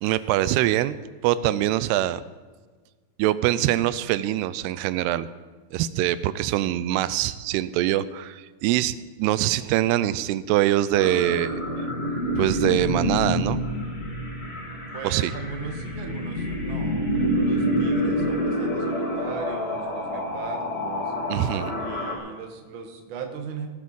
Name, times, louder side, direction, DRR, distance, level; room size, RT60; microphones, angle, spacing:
voice 1, 0.0-1.0 1.2-2.2 3.2-5.3 5.7-11.6 12.4-13.6 15.0-15.3 21.3-21.7, right 13 dB, 85° right, 16 dB, 2.6 m, -23 dB
sound 1, 10.9-22.2, equal, 35° left, 1.0 m, -27 dB
voice 2, 14.9-21.1 21.8-23.7, right 5 dB, 65° right, 4 dB, 1.2 m, -38 dB
18.0 x 7.7 x 5.5 m, 1.4 s
omnidirectional pair, 4.6 m